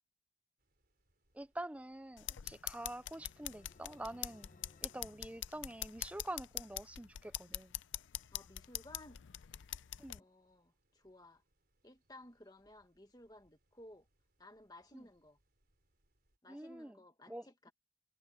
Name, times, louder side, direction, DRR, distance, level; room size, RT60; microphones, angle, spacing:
sound 1, 0.6-16.4, right 1 dB, 50° right, 5.0 m, -80 dB
voice 1, 1.3-4.5 4.8-7.8 10.0-10.2 14.9-15.1 16.5-17.0 17.3-17.7, right 1 dB, 5° right, 0.4 m, -46 dB
sound 2, 1.9-6.4, left 2 dB, 40° left, 0.9 m, -65 dB
sound 3, 2.2-10.2, left 13 dB, 75° left, 0.5 m, -44 dB
voice 2, 8.3-9.2 10.1-11.4 11.8-14.1 14.4-15.4 16.4-17.7, left 1 dB, 20° left, 1.7 m, -57 dB
head